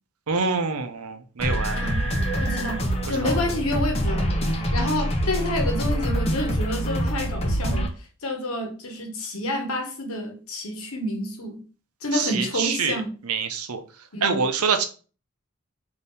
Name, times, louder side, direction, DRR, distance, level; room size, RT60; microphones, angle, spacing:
voice 1, 0.3-1.8 3.2-3.3 12.1-13.0 13.2-13.8 14.2-14.9, right 5 dB, 85° right, 0.6 m, -25 dB
sound 1, 1.4-7.9, equal, 25° left, 0.6 m, -25 dB
sound 2, 1.4-2.7 3.7-3.8, right 2 dB, ahead, 1.0 m, -34 dB
voice 2, 1.7-2.0 2.4-7.9 8.2-11.6 12.0-13.1 14.1-14.4, left 1 dB, 80° left, 1.1 m, -29 dB
3.5 x 2.7 x 4.1 m
head